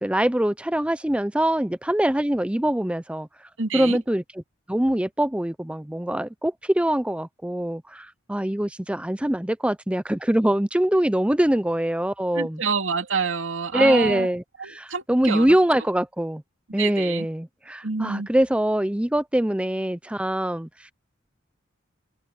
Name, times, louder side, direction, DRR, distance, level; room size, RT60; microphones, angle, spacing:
voice 1, 0.0-3.3 3.7-4.2 4.7-12.6 13.7-16.4 16.7-20.9, right 1 dB, 5° right, 0.6 m, -23 dB
voice 2, 3.6-4.0 12.3-14.3 14.6-15.6 16.8-17.3 17.8-18.3, right 5 dB, 90° right, 2.5 m, -27 dB
head